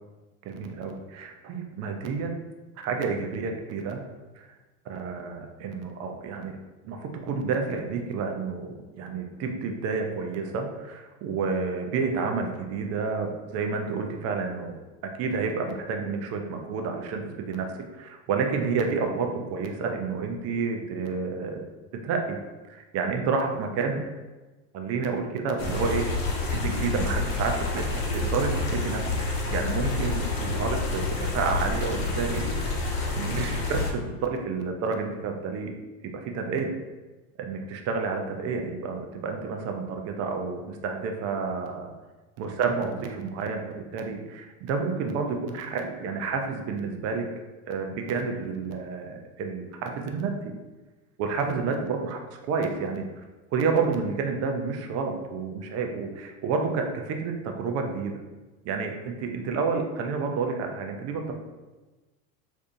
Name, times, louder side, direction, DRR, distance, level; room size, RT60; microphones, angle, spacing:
voice 1, 0.4-2.3 2.8-4.0 4.4-4.5 4.9-6.6 6.8-14.7 15.0-17.7 18.0-21.6 22.0-22.4 22.7-24.0 24.7-29.2 29.5-32.8 33.1-35.7 36.1-36.7 37.4-41.9 42.4-47.3 47.7-50.5 51.2-53.1 53.5-58.2 58.6-61.4, right 5 dB, 35° right, 4 dB, 0.5 m, -30 dB
sound 1, 25.6-33.9, left 3 dB, 55° left, 0.9 m, -28 dB
3.4 x 2.5 x 2.6 m, 1.2 s
hypercardioid pair, 95°, 44 cm